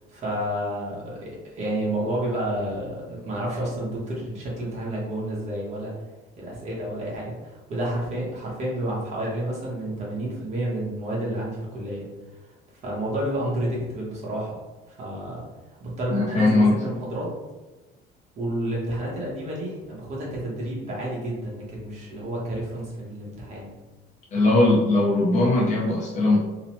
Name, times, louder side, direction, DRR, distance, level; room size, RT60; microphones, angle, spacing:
voice 1, 0.1-5.9 6.4-12.0 12.8-14.6 14.9-15.4 15.8-17.3 18.4-23.7, right 1 dB, 35° right, -5 dB, 0.8 m, -30 dB
voice 2, 16.1-16.7 24.3-26.4, left 2 dB, 35° left, -3 dB, 0.5 m, -19 dB
2.9 x 2.0 x 2.9 m, 1.1 s
cardioid pair, 170°, 21 cm